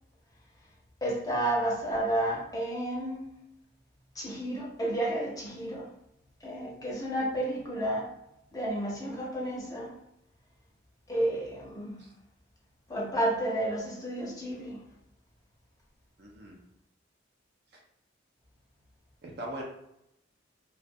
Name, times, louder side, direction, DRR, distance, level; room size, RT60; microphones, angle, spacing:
voice 1, 1.0-3.2 4.2-5.9 6.4-8.1 8.5-9.9 11.1-12.0 12.9-14.8, right 1 dB, 20° left, -4 dB, 0.6 m, -31 dB
voice 2, 16.2-16.6 19.2-19.6, right 1 dB, 50° right, -1 dB, 0.5 m, -40 dB
2.2 x 2.2 x 2.5 m, 0.80 s
head